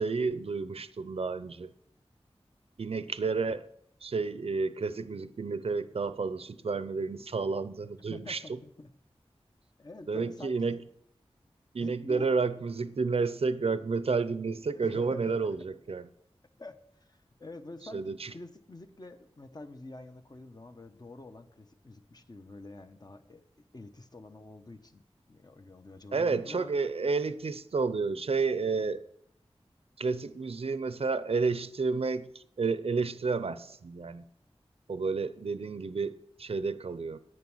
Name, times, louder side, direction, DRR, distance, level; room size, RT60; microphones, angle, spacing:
voice 1, 0.0-1.7 2.8-3.6 4.0-8.4 10.1-10.8 11.7-16.1 17.9-18.3 26.1-29.0 30.0-34.2 34.9-37.2, right 4 dB, 70° right, 0.6 m, -31 dB
voice 2, 8.1-8.9 9.8-10.8 11.8-12.4 14.7-15.4 16.6-23.5 23.7-25.0 25.3-26.7, left 2 dB, 40° left, 1.1 m, -47 dB
11.0 x 9.0 x 6.3 m
wide cardioid pair, 75°, 11 cm